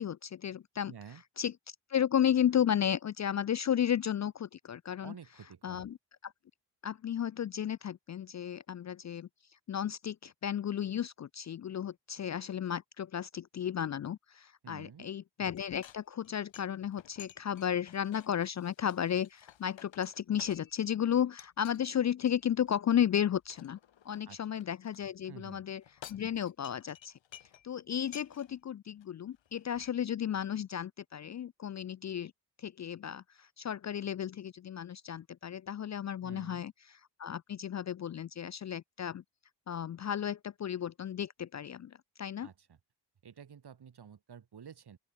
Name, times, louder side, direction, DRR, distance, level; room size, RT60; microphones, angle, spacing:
voice 1, 0.0-0.9 1.4-5.1 5.6-6.0 6.2-6.3 6.8-9.3 9.7-23.8 24.1-25.8 26.1-27.1 27.6-32.3 32.6-36.7 37.2-39.2 39.7-42.5, left 9 dB, 40° left, 0.4 m, -33 dB
voice 2, 0.9-1.2 5.0-5.8 14.6-15.1 24.3-24.4 25.3-25.6 36.2-36.6 42.4-42.8 43.2-45.0, right 7 dB, 60° right, 7.6 m, -50 dB
sound 1, 15.5-20.9 21.4-21.8 22.3-25.0 25.7-27.7 28.0-28.6 29.0-29.1 29.4-29.9, left 10 dB, 85° left, 3.5 m, -55 dB
open air
wide cardioid pair, 115°, 44 cm